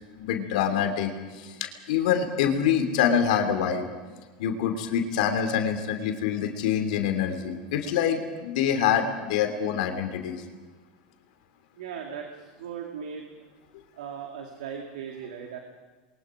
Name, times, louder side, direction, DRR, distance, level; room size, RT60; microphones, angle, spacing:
voice 1, 0.2-1.1 1.4-1.5 1.9-3.8 4.4-10.4, left 8 dB, 75° left, 5 dB, 3.0 m, -25 dB
voice 2, 11.8-12.3 12.6-13.3 14.0-15.6, right 7 dB, 85° right, 2 dB, 2.4 m, -37 dB
28.5 x 22.5 x 5.0 m, 1.3 s
hypercardioid pair, 105°, 4 cm